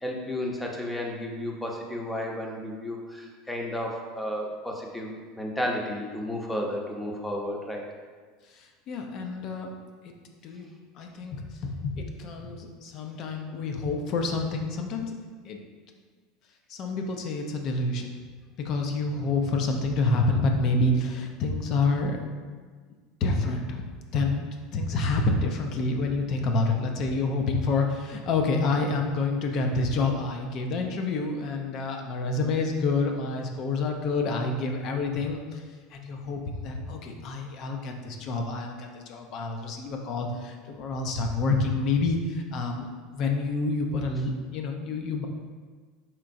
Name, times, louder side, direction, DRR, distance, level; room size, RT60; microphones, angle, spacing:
voice 1, 0.0-7.8, left 1 dB, 10° left, 0 dB, 0.7 m, -32 dB
voice 2, 8.6-9.7 10.0-10.1 10.4-10.7 11.0-15.1 15.4-15.6 16.7-18.2 18.6-22.2 23.2-23.8 24.1-35.6 35.9-45.3, left 3 dB, 55° left, 3 dB, 0.6 m, -28 dB
4.4 x 3.6 x 2.6 m, 1.5 s
hypercardioid pair, 95°, 0 cm